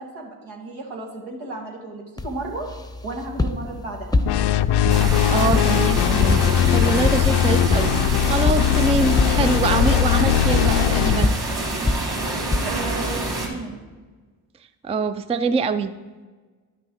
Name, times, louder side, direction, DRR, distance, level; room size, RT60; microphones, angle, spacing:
voice 1, 0.0-2.7 3.0-4.1 12.6-13.9, right 2 dB, 75° right, 0 dB, 2.1 m, -34 dB
sound 1, 2.2-13.0, left 2 dB, 10° left, 0.8 m, -27 dB
sound 2, 4.2-11.3, left 11 dB, 60° left, 0.5 m, -20 dB
sound 3, 4.9-13.5, right 2 dB, 55° right, 3.3 m, -27 dB
voice 2, 5.3-7.9 8.3-11.3 14.8-15.9, right 4 dB, 15° right, 11 dB, 0.4 m, -24 dB
11.0 x 6.0 x 4.7 m, 1.3 s
hypercardioid pair, 50°, 49 cm